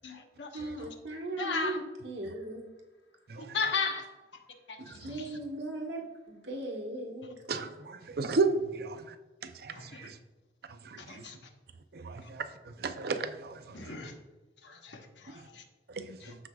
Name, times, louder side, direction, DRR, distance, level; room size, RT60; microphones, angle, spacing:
voice 1, 0.0-0.6 1.4-1.8 3.4-4.0 4.7-5.4 9.7-10.1 11.0-11.4 12.2-12.3 13.7-14.1 14.6-15.6 16.2-16.3, left 4 dB, 80° left, 1.1 m, -36 dB
voice 2, 0.5-2.7 5.0-7.3, right 2 dB, 80° right, 1.5 m, -38 dB
voice 3, 4.8-5.2 7.5-9.2 9.4-10.2 10.8-11.2 11.9-13.8 15.9-16.4, right 4 dB, 60° right, 0.5 m, -34 dB
14.0 x 4.7 x 2.3 m
head